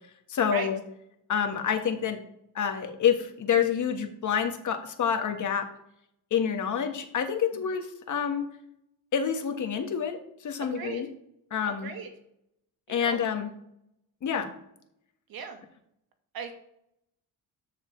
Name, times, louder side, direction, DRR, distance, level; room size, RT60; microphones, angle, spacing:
voice 1, 0.3-0.8 1.3-2.2 2.5-5.6 6.3-8.5 9.1-11.1 11.5-11.9 12.9-13.5 14.2-14.5, left 7 dB, 50° left, 5 dB, 1.4 m, -27 dB
voice 2, 10.6-11.0 11.7-12.1 12.9-13.2 15.3-15.6 16.3-16.5, right 6 dB, 70° right, 6 dB, 1.7 m, -38 dB
13.0 x 6.5 x 3.2 m, 0.77 s
cardioid pair, 105°, 37 cm